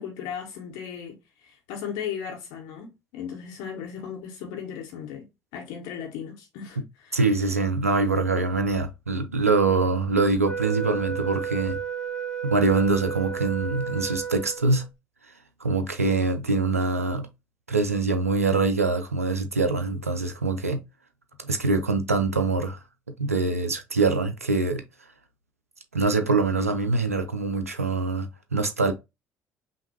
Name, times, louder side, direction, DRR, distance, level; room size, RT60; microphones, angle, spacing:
voice 1, 0.0-5.3 5.5-7.2, left 8 dB, 60° left, 1.2 m, -36 dB
voice 2, 7.1-11.8 12.4-14.8 15.6-17.3 17.7-20.8 21.4-22.8 23.2-24.8 25.9-28.9, right 3 dB, 85° right, 0.4 m, -24 dB
Wind instrument woodwind instrument, 10.4-14.8, right 8 dB, 5° left, 2.1 m, -32 dB
5.4 x 2.5 x 2.9 m
figure-of-eight pair, 50°, 8 cm